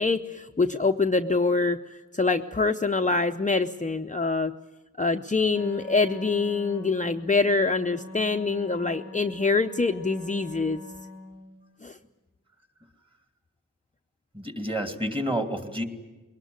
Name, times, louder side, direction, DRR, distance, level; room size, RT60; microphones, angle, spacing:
voice 1, 0.0-4.5 5.0-10.8 11.8-12.0, left 3 dB, 25° left, 5 dB, 0.7 m, -25 dB
Wind instrument woodwind instrument, 5.5-11.6, left 2 dB, 35° right, 3.8 m, -44 dB
voice 2, 14.3-15.8, equal, 15° right, 5 dB, 2.6 m, -29 dB
22.0 x 18.5 x 9.3 m, 1.1 s
wide cardioid pair, 65°, 31 cm